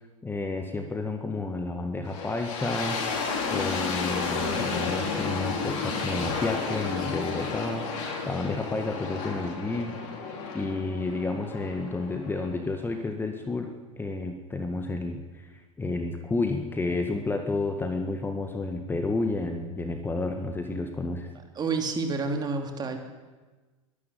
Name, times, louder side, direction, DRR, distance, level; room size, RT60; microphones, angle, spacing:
voice 1, 0.2-3.0 3.5-13.7 14.0-21.3, left 3 dB, 10° left, 5 dB, 1.8 m, -31 dB
sound 1, 2.0-13.0, left 4 dB, 50° left, 5.2 m, -32 dB
voice 2, 21.6-23.0, right 4 dB, 25° right, 5 dB, 3.1 m, -29 dB
23.0 x 12.0 x 9.3 m, 1.3 s
figure-of-eight pair, 85°, 17 cm